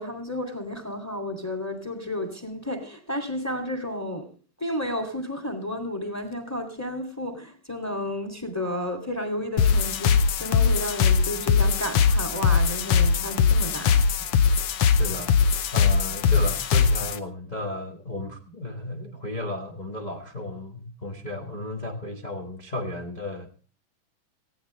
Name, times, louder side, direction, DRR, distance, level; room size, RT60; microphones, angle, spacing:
voice 1, 0.0-4.3 4.6-14.0, left 1 dB, 5° left, 1.9 m, -32 dB
sound 1, 9.6-17.2, left 6 dB, 70° left, 1.4 m, -21 dB
voice 2, 15.0-15.3 15.7-23.6, left 1 dB, 55° left, 0.4 m, -34 dB
19.0 x 15.5 x 3.2 m
omnidirectional pair, 3.6 m